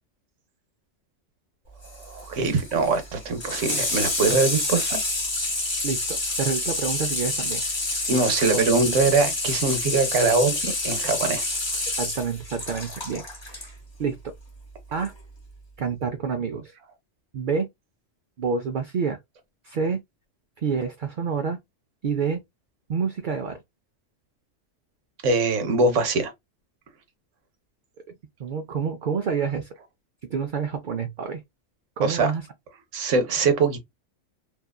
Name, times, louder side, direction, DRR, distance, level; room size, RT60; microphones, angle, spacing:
Water tap faucet / Sink (filling or washing), 1.8-13.7 15.0-15.1, left 2 dB, 25° left, 0.9 m, -28 dB
voice 1, 1.9-5.0 8.1-11.4 25.2-26.3 32.0-32.3 32.9-33.8, right 4 dB, 85° right, 1.1 m, -22 dB
voice 2, 5.8-7.6 8.5-8.6 8.9-9.0 12.0-13.7 14.0-14.3 14.9-15.1 15.8-16.7 17.3-17.7 18.4-19.2 19.6-20.0 20.6-21.6 22.0-22.4 22.9-23.6 28.4-29.7 30.3-31.4 32.0-32.4, right 6 dB, 60° right, 0.5 m, -28 dB
2.7 x 2.4 x 2.2 m
omnidirectional pair, 1.2 m